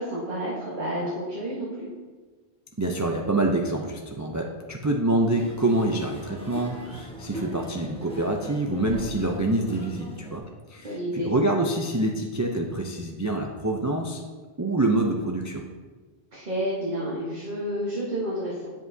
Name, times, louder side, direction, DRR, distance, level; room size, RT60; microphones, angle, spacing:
voice 1, 0.0-1.9 10.8-11.3 16.3-18.7, equal, 50° right, -7 dB, 1.4 m, -30 dB
voice 2, 2.8-10.4 10.7-14.2 14.6-15.6, right 2 dB, 30° right, 1 dB, 0.3 m, -26 dB
sound 1, 5.3-10.4, equal, 5° left, 1.1 m, -39 dB
7.9 x 7.3 x 2.7 m, 1.4 s
omnidirectional pair, 1.1 m